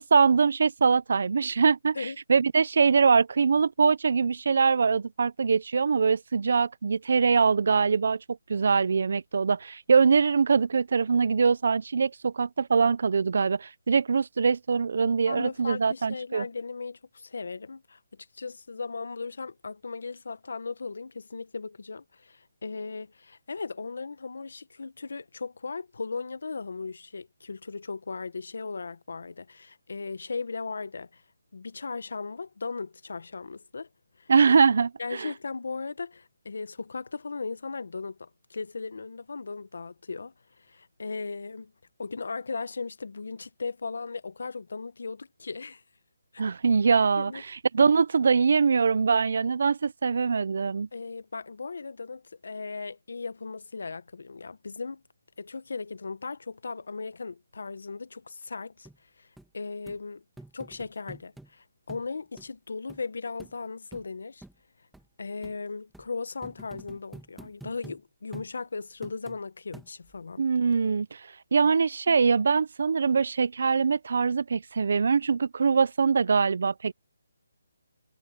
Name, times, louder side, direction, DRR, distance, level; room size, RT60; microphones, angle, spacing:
voice 1, 0.0-8.2 8.5-16.5 34.3-35.3 46.4-50.9 70.4-76.9, right 5 dB, 55° right, 0.6 m, -23 dB
voice 2, 15.3-18.0 18.3-31.2 31.5-33.9 34.2-34.3 35.0-41.7 42.0-45.8 46.3-46.4 47.2-47.4 50.9-55.0 55.4-58.9 59.2-59.3 59.5-60.2 60.5-64.4 65.2-70.5, left 4 dB, 70° left, 1.3 m, -37 dB
sound 1, 58.9-59.0 59.4-59.5 59.9-60.0 60.4-61.5 61.9-62.1 62.4-62.5 62.9-63.0 63.4-63.5 63.9-64.1 64.4-64.5 64.9-65.0 65.4-65.6 65.9-66.1 66.4-68.0 68.3-68.5 69.0-69.4 69.7-70.2 70.7-70.8, right 1 dB, ahead, 1.8 m, -47 dB
hypercardioid pair, 170°, 0 cm